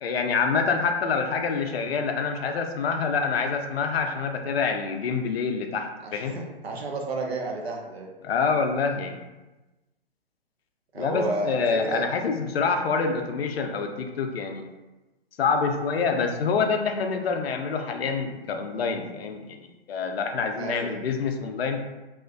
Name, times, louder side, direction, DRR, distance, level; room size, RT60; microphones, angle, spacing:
voice 1, 0.0-6.3 8.2-9.2 10.9-14.6 15.4-21.8, left 5 dB, 75° left, 4 dB, 0.5 m, -26 dB
voice 2, 6.0-8.1 10.9-12.1 20.6-21.0, right 2 dB, 85° right, 0 dB, 0.7 m, -31 dB
2.4 x 2.1 x 2.4 m, 1.1 s
hypercardioid pair, 140°, 31 cm